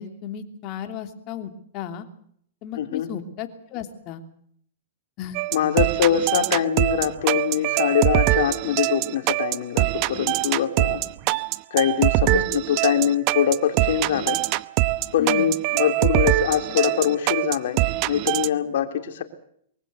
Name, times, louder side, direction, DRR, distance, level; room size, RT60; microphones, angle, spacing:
voice 1, 0.0-2.1 2.6-4.2 5.2-5.4 12.2-12.5 15.2-15.5, left 9 dB, 40° left, 7 dB, 3.0 m, -34 dB
voice 2, 2.8-3.1 5.5-11.1 11.7-14.4 15.1-17.8 18.1-19.2, left 9 dB, 70° left, 7 dB, 3.4 m, -23 dB
sound 1, 5.3-18.5, right 18 dB, 45° right, 0.8 m, -23 dB
23.5 x 16.0 x 8.2 m, 0.66 s
hypercardioid pair, 130°, 0 cm